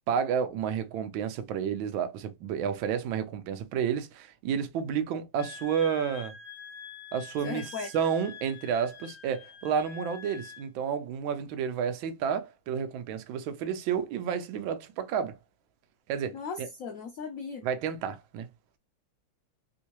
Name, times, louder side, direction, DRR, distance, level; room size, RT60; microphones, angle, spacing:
voice 1, 0.1-6.3 7.1-15.4 16.1-16.7 17.6-18.5, right 7 dB, 80° right, 1.4 m, -31 dB
Wind instrument woodwind instrument, 5.4-10.7, left 7 dB, 35° left, 1.3 m, -46 dB
voice 2, 7.4-7.9 16.3-17.7, left 5 dB, 85° left, 0.7 m, -37 dB
3.5 x 2.6 x 2.9 m
omnidirectional pair, 2.2 m